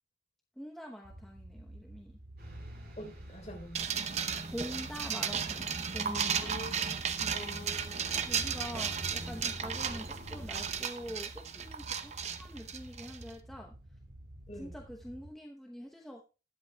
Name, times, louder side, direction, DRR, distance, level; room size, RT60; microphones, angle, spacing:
voice 1, 0.6-2.2 4.5-6.6 7.2-7.4 8.3-13.7 14.6-16.2, equal, ahead, 0 dB, 0.9 m, -45 dB
sound 1, 1.0-15.3, right 1 dB, 80° right, 2.5 m, -50 dB
sound 2, 2.4-10.8, equal, 60° right, 4.3 m, -47 dB
voice 2, 3.0-3.9 6.0-7.0 7.3-8.1 14.5-14.7, equal, 40° left, 1 dB, 3.9 m, -45 dB
sound 3, 3.7-13.3, right 7 dB, 40° right, 0.7 m, -35 dB
20.5 x 8.1 x 2.3 m, 0.33 s
head